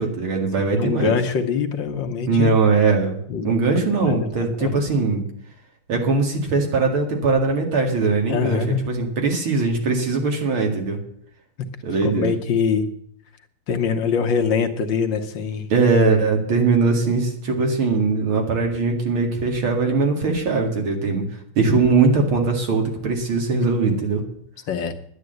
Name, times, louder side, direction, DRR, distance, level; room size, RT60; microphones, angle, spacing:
voice 1, 0.0-1.2 2.3-5.2 5.9-11.0 11.8-12.3 13.9-14.0 15.7-21.2 21.6-24.2, right 4 dB, 70° right, 2 dB, 2.9 m, -20 dB
voice 2, 0.7-2.6 3.3-4.7 8.3-8.9 12.0-12.9 13.7-15.7 23.8-24.0 24.7-24.9, left 6 dB, 65° left, 6 dB, 1.6 m, -24 dB
11.0 x 9.8 x 7.9 m, 0.66 s
omnidirectional pair, 2.4 m